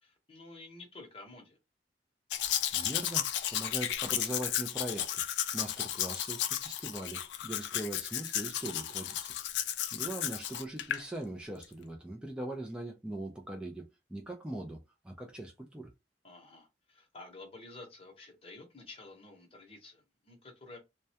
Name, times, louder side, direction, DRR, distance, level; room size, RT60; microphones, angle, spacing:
voice 1, 0.0-1.6 10.0-10.4 16.2-20.8, left 2 dB, 35° left, 0.8 m, -51 dB
Domestic sounds home sounds, 2.3-11.0 11.6-11.7, left 11 dB, 80° left, 0.3 m, -34 dB
voice 2, 2.7-5.2 5.5-9.3 9.9-14.8 15.0-15.9, right 1 dB, 5° right, 0.3 m, -41 dB
2.3 x 2.1 x 2.7 m
head